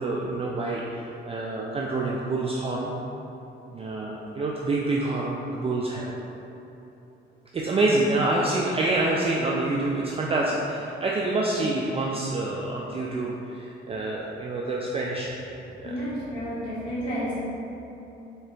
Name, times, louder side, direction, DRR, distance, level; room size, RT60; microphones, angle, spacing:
voice 1, 0.0-2.9 3.7-6.2 7.5-15.4 15.8-16.0, right 2 dB, 30° right, -3 dB, 0.3 m, -27 dB
voice 2, 15.8-17.3, equal, 25° left, -13 dB, 1.5 m, -31 dB
3.7 x 2.8 x 3.4 m, 2.9 s
cardioid pair, 90°, 20 cm